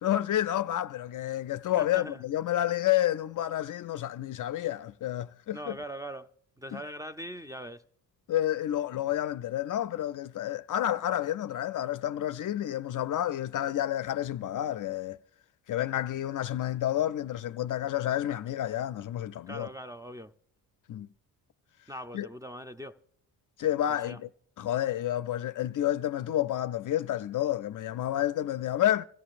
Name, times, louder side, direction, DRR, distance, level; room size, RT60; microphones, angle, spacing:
voice 1, 0.0-5.8 6.7-6.8 8.3-15.2 15.7-19.7 20.9-21.1 22.1-22.3 23.6-24.3 24.6-29.0, left 12 dB, 50° left, 0.5 m, -30 dB
voice 2, 1.8-2.2 5.5-6.3 6.6-7.8 19.5-20.3 21.9-23.0 23.9-24.2, equal, 10° right, 0.5 m, -41 dB
26.0 x 14.0 x 2.5 m
supercardioid pair, 65°, 43 cm